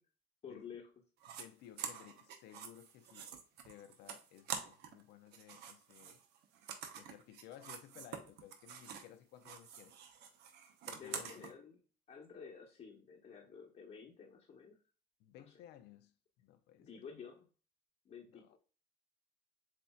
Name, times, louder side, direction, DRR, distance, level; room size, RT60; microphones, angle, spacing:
voice 1, 0.4-0.9 10.9-11.8 12.1-14.8 16.8-17.5 18.0-18.6, left 6 dB, 45° left, 1.1 m, -51 dB
sound 1, 1.2-1.4 1.8-5.0 5.3-9.1 9.4-11.5, right 7 dB, 85° right, 0.9 m, -47 dB
voice 2, 1.3-3.3 3.6-6.2 7.0-10.0 10.9-11.6 15.2-17.0 18.3-18.6, left 11 dB, 80° left, 0.5 m, -57 dB
7.3 x 2.6 x 2.3 m
cardioid pair, 110°, 17 cm